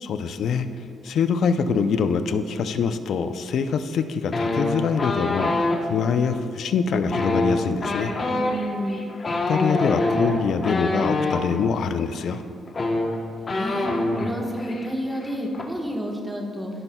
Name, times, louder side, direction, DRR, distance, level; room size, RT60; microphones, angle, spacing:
voice 1, 0.0-8.3 9.5-12.4, left 6 dB, 65° left, 10 dB, 0.4 m, -24 dB
sound 1, 4.3-5.8 7.0-11.4 12.3-12.4 12.7-14.3 14.6-14.9 15.1-15.6, left 2 dB, 35° left, 0.9 m, -25 dB
voice 2, 8.3-9.2 13.4-13.9 14.2-16.7, equal, 5° right, 0 dB, 1.2 m, -30 dB
15.0 x 5.5 x 2.3 m, 2.5 s
cardioid pair, 90°, 0 cm